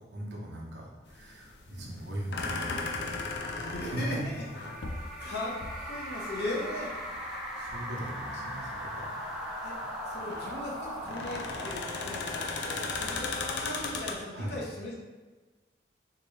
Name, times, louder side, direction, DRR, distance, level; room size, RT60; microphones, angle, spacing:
voice 1, 0.0-3.6 3.9-4.0 7.6-9.1 9.7-10.0 14.3-14.6, equal, 80° right, -2 dB, 0.8 m, -40 dB
sound 1, 1.1-14.1, left 3 dB, 75° left, 0.4 m, -37 dB
voice 2, 3.5-4.4 4.9-6.9 9.6-9.8 10.1-15.0, left 1 dB, 60° left, -4 dB, 0.8 m, -38 dB
sound 2, 4.1-13.8, equal, 5° right, 0.5 m, -40 dB
3.6 x 2.8 x 3.2 m, 1.3 s
head